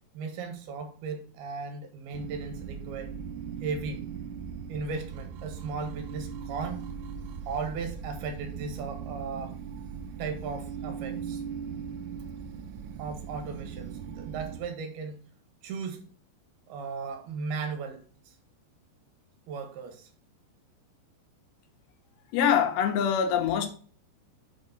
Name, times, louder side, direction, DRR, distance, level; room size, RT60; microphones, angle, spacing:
voice 1, 0.1-3.2 3.6-4.1 4.7-6.8 7.5-9.6 10.2-11.4 13.0-15.2 15.6-16.0 16.7-18.3 19.5-20.1, right 4 dB, 65° right, 3.4 m, -36 dB
sound 1, 2.1-14.6, right 7 dB, 85° right, 3.1 m, -39 dB
voice 2, 22.3-23.7, left 8 dB, 75° left, 3.2 m, -24 dB
6.8 x 6.6 x 5.2 m
omnidirectional pair, 5.3 m